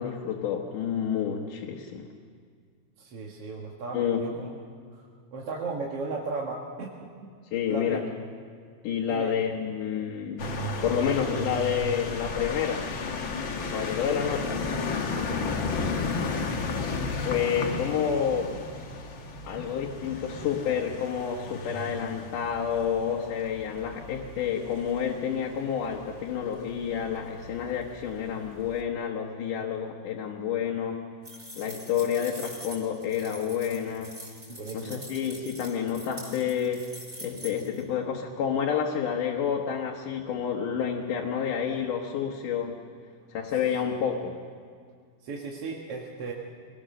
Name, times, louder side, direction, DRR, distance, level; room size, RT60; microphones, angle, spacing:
voice 1, 0.0-2.1 3.9-4.4 7.5-8.1 8.8-10.5 10.8-12.9 13.5-14.7 17.2-18.6 19.4-31.0 31.6-34.2 34.7-36.9 37.2-42.8 43.3-44.4, left 8 dB, 85° left, -1 dB, 2.8 m, -29 dB
voice 2, 3.0-4.6 4.9-5.1 5.3-7.3 7.7-8.0 9.1-9.4 34.5-35.0 45.2-46.3, right 3 dB, 55° right, -2 dB, 2.3 m, -36 dB
sound 1, 10.4-28.8, left 3 dB, 50° left, 1.8 m, -34 dB
sound 2, 31.2-37.8, right 1 dB, 15° right, 5.3 m, -44 dB
24.5 x 19.0 x 6.4 m, 2.1 s
omnidirectional pair, 3.6 m